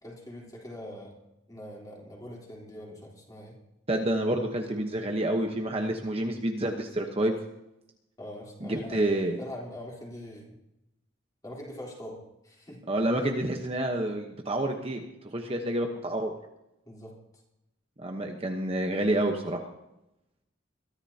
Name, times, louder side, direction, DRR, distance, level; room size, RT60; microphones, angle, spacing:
voice 1, 0.0-1.2 1.5-3.6 8.2-9.0 9.4-10.6 11.4-12.8 16.9-17.2, left 1 dB, 20° left, -2 dB, 3.7 m, -43 dB
voice 2, 3.9-7.3 8.6-9.4 12.9-15.0 15.3-16.3 18.0-19.6, right 1 dB, 30° right, 3 dB, 1.1 m, -28 dB
22.5 x 13.5 x 2.9 m, 0.88 s
head